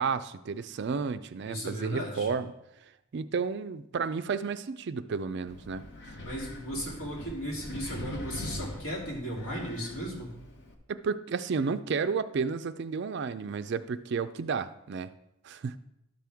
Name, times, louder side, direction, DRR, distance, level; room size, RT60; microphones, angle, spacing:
voice 1, 0.0-2.5 3.1-5.8 10.9-15.1 15.4-15.8, right 5 dB, 50° right, 12 dB, 0.4 m, -32 dB
voice 2, 1.4-2.4 6.2-10.4, equal, 75° left, -4 dB, 3.0 m, -36 dB
Wind, 5.5-10.7, left 1 dB, 50° left, 1.0 m, -42 dB
12.0 x 6.0 x 3.5 m, 0.83 s
head